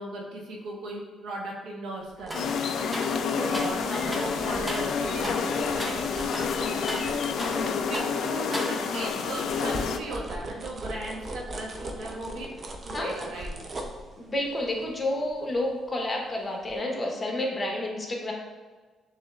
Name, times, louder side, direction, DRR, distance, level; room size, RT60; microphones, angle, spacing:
voice 1, 0.0-2.6 3.4-6.5 7.6-12.5 12.8-13.5, right 1 dB, 80° right, -1 dB, 1.1 m, -37 dB
sound 1, 2.0-8.3 8.7-16.3 16.6-16.8, right 1 dB, 40° right, 0.7 m, -40 dB
sound 2, 2.3-10.0, left 6 dB, 70° left, 0.4 m, -29 dB
sound 3, 2.3-2.5 2.9-3.8 4.1-4.3 4.7-4.9 5.2-5.5 5.8-6.0 6.3-7.7 7.9-8.2 8.5-9.1, equal, 10° right, 0.9 m, -36 dB
voice 2, 14.2-18.3, left 1 dB, 25° left, 0 dB, 1.0 m, -30 dB
6.7 x 3.1 x 2.5 m, 1.4 s
cardioid pair, 90°, 0 cm